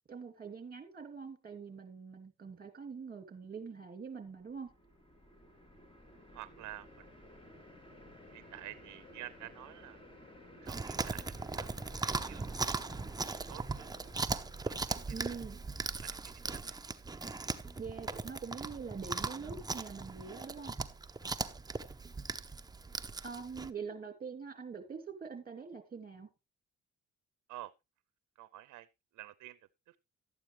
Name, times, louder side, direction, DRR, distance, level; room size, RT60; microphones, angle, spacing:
voice 1, 0.1-4.7 15.1-15.6 17.8-20.7 23.2-26.3, right 5 dB, 30° right, 2.8 m, -44 dB
sound 1, 4.2-15.6, left 1 dB, 20° left, 2.7 m, -56 dB
voice 2, 6.3-6.9 8.3-10.0 10.6-11.2 11.6-11.7 12.0-12.4 13.5-14.0 14.6-15.0 15.2-15.4 16.0-16.2 16.5-16.8 21.4-21.5 27.5-27.7 28.4-28.9 29.1-29.6 29.9-30.0, right 15 dB, 75° right, 0.6 m, -49 dB
Chewing mastication, 10.7-23.7, right 3 dB, 15° right, 0.7 m, -39 dB
12.5 x 8.9 x 3.2 m
cardioid pair, 90°, 30 cm